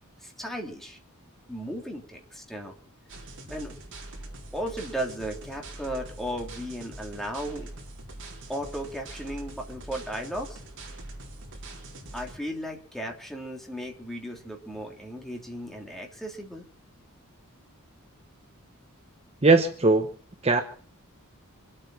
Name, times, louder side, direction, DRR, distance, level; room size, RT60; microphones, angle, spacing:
voice 1, 0.2-1.0 1.5-2.8 3.5-3.8 4.5-7.7 8.5-10.6 12.1-16.6, equal, ahead, 1 dB, 3.1 m, -35 dB
sound 1, 3.1-12.4, right 2 dB, 60° right, 4.0 m, -43 dB
voice 2, 19.4-20.1 20.4-20.6, right 3 dB, 30° right, 6 dB, 1.1 m, -19 dB
26.0 x 8.7 x 6.2 m, 0.44 s
head